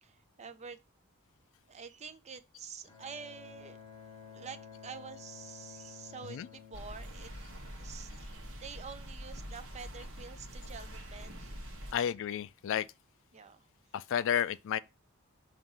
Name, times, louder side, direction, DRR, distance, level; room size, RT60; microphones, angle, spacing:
voice 1, 0.0-0.8 1.7-3.8 4.3-7.3 7.8-8.1 8.6-11.5 12.0-12.1 13.3-13.7, right 5 dB, 30° right, 0.5 m, -47 dB
Bowed string instrument, 2.9-7.9, left 7 dB, 20° left, 1.2 m, -52 dB
sound 1, 6.7-11.9, equal, 60° right, 1.3 m, -45 dB
voice 2, 11.9-12.9 13.9-14.8, left 9 dB, 60° left, 0.3 m, -31 dB
5.9 x 2.9 x 5.4 m
head